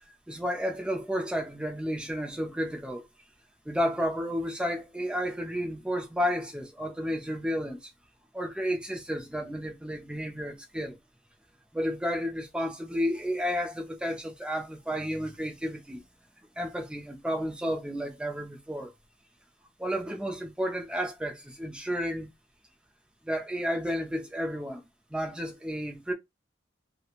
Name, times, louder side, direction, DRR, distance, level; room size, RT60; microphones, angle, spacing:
voice 1, 0.3-3.0 3.7-7.9 8.3-11.0 11.7-16.0 16.6-18.9 19.8-22.3 23.2-24.8 25.1-26.1, equal, 5° right, 0.4 m, -32 dB
2.9 x 2.1 x 2.4 m
head